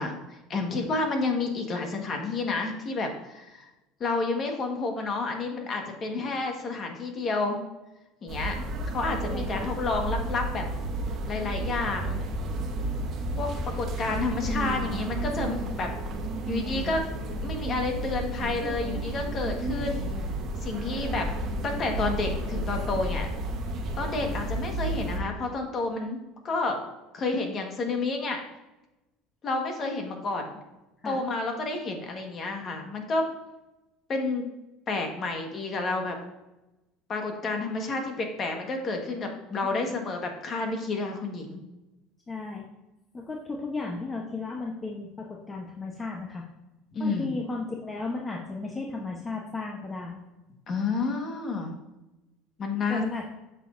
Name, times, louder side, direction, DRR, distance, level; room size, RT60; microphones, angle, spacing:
voice 1, 0.0-3.6 4.0-7.6 8.2-8.6 8.9-10.6 11.3-12.2 13.4-15.9 16.5-17.1 17.4-20.1 20.6-21.3 21.6-23.3 24.0-26.2 26.4-26.8 27.1-28.4 29.4-30.6 31.0-33.3 34.1-34.5 34.9-36.2 37.1-41.6 46.9-47.4 50.7-51.7 52.6-53.0, left 3 dB, 35° left, 4 dB, 1.4 m, -30 dB
sound 1, 8.3-25.2, right 1 dB, 45° right, 1.1 m, -32 dB
voice 2, 9.3-9.7 14.4-14.9 31.0-31.2 39.7-39.9 42.3-42.6 43.1-46.4 47.0-50.2 52.9-53.3, left 3 dB, 20° left, 0 dB, 0.9 m, -35 dB
7.9 x 6.1 x 2.6 m, 1.0 s
supercardioid pair, 125°, 0 cm